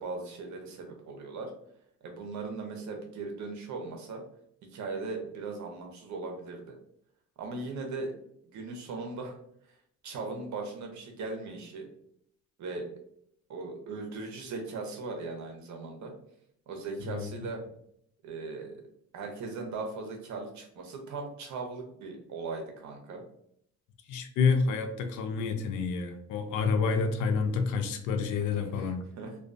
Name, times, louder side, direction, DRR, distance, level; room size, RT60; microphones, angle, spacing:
voice 1, 0.0-1.5 2.0-4.2 4.6-6.7 7.4-8.1 8.5-9.4 10.0-11.9 12.6-12.9 13.5-16.1 16.7-17.6 18.2-18.8 19.1-23.2 28.4-29.4, right 3 dB, 70° right, 0.7 m, -38 dB
voice 2, 24.1-29.0, left 5 dB, 85° left, 0.5 m, -28 dB
2.3 x 2.2 x 2.5 m
cardioid pair, 90°, 30 cm